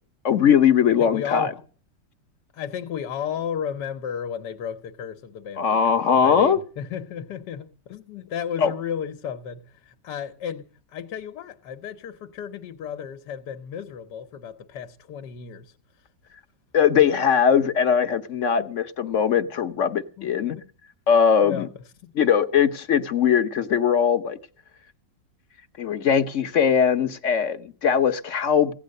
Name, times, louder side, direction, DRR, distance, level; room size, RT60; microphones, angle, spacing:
voice 1, 0.2-1.5 5.6-6.6 8.6-8.7 16.7-20.6 21.1-21.7 22.1-24.4 25.8-28.7, left 7 dB, 55° left, 1.0 m, -20 dB
voice 2, 1.0-1.6 2.5-15.7 18.6-18.7 20.2-20.7 21.4-21.7 22.0-22.1, left 8 dB, 75° left, 1.4 m, -34 dB
16.5 x 9.9 x 6.4 m
omnidirectional pair, 1.9 m